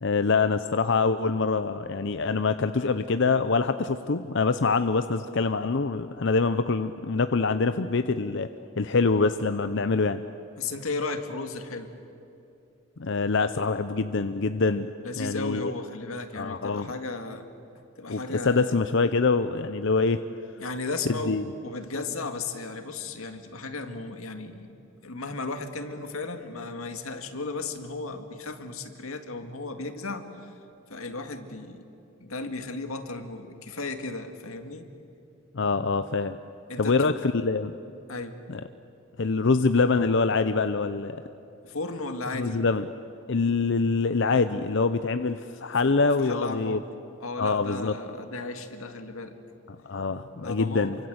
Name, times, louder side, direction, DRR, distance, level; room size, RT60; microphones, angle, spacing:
voice 1, 0.0-8.5 8.8-10.2 13.0-14.9 15.2-15.7 16.3-16.9 18.1-20.2 21.3-21.4 35.5-36.4 36.8-37.7 38.5-38.6 39.2-41.2 42.3-42.9 43.3-46.8 47.4-47.9 49.7-51.0, left 4 dB, 60° left, 10 dB, 0.7 m, -25 dB
voice 2, 10.6-11.9 15.0-17.5 18.0-18.8 20.6-24.8 25.0-30.6 30.9-31.9 32.2-34.9 36.7-37.1 38.1-38.4 38.7-38.8 41.6-42.6 45.8-46.8 47.2-49.3 50.4-50.9, left 3 dB, 90° left, 7 dB, 2.0 m, -35 dB
28.0 x 25.0 x 8.0 m, 2.8 s
head